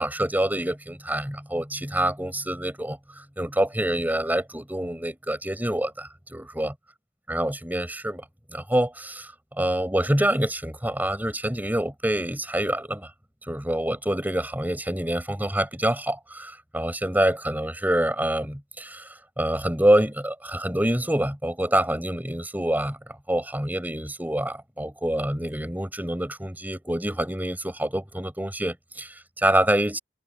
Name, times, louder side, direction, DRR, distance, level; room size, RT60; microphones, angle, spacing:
voice 1, 0.0-6.7 7.3-8.2 8.5-13.1 13.5-19.1 19.4-23.0 23.3-30.0, right 1 dB, 10° right, 5.7 m, -26 dB
head